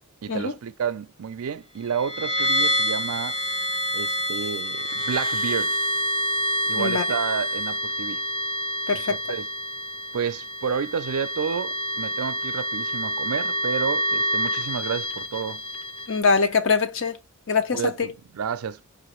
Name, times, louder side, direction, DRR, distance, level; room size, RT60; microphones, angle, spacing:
voice 1, 0.2-3.4 3.9-5.8 6.7-8.2 8.9-9.5 10.1-15.6 17.7-18.8, right 7 dB, 75° right, 0.4 m, -30 dB
sound 1, 1.9-16.2, equal, 25° left, 0.6 m, -27 dB
voice 2, 8.9-9.2 16.1-17.2 17.5-17.9, left 4 dB, 60° left, 0.7 m, -23 dB
4.9 x 2.5 x 3.0 m
head